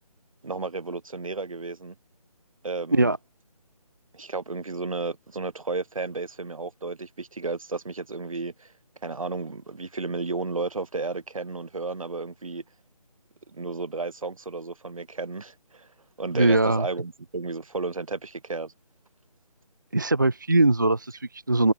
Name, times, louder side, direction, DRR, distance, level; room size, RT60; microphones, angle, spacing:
voice 1, 0.4-2.0 2.6-3.1 4.1-8.7 9.0-12.6 13.5-15.9 16.2-18.7, right 3 dB, 60° right, 2.0 m, -33 dB
voice 2, 16.3-16.9 19.9-21.7, right 2 dB, 30° right, 0.6 m, -21 dB
figure-of-eight pair, 180°, 20 cm